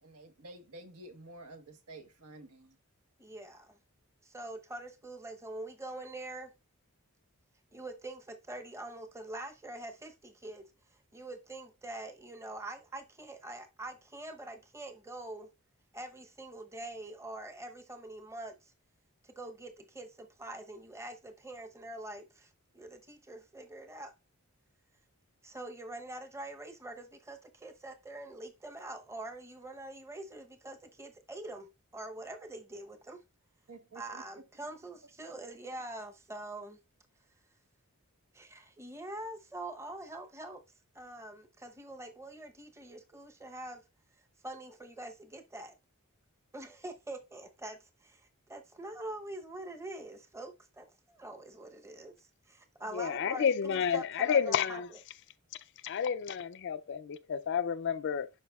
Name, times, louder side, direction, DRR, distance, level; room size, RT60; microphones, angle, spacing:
voice 1, 0.0-2.8 33.7-34.2, right 2 dB, 90° right, 1.2 m, -50 dB
voice 2, 3.2-3.8 4.2-6.5 7.7-10.7 10.9-15.5 15.9-18.7 19.2-24.1 25.4-31.7 31.9-33.2 33.9-36.8 38.3-40.6 40.9-43.8 44.4-45.7 46.5-55.0, right 1 dB, 10° right, 0.8 m, -44 dB
voice 3, 52.9-54.9 55.8-58.3, left 7 dB, 55° left, 0.4 m, -30 dB
11.0 x 4.8 x 2.3 m
head